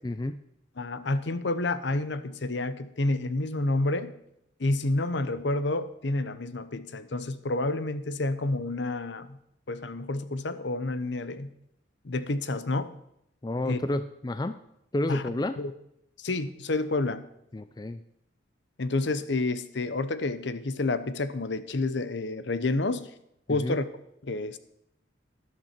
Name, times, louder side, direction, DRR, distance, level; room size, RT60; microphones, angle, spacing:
voice 1, 0.0-0.4 13.4-14.6 14.9-15.6 17.5-18.0 23.5-23.8, left 1 dB, 20° left, 11 dB, 0.4 m, -30 dB
voice 2, 0.8-4.1 4.6-9.4 9.7-11.5 12.0-12.9 13.7-13.8 15.1-15.2 15.6-15.7 16.2-17.2 18.8-23.1 23.5-23.9 24.2-24.6, left 2 dB, 65° left, 13 dB, 0.8 m, -29 dB
12.0 x 11.0 x 4.4 m, 0.78 s
head